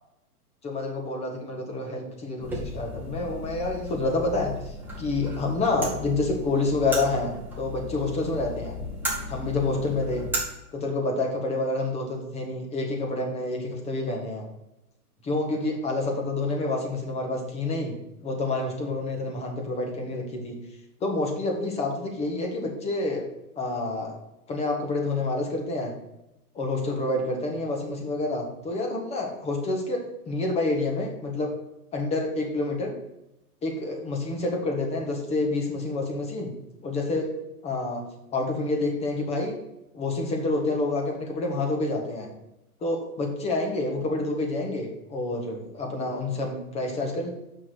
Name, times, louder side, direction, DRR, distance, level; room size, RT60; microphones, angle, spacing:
voice 1, 0.6-8.7 9.3-10.2 10.7-14.4 15.2-17.9 18.2-20.6 21.0-23.2 23.5-24.2 24.5-25.9 26.5-31.5 31.9-32.9 33.6-36.5 36.8-37.3 37.6-38.0 38.3-39.5 39.9-42.3 42.8-47.3, left 2 dB, 15° left, 1 dB, 1.3 m, -28 dB
sound 1, 2.4-10.4, left 1 dB, 5° right, 2.1 m, -35 dB
6.1 x 5.9 x 6.1 m, 0.91 s
hypercardioid pair, 150°, 46 cm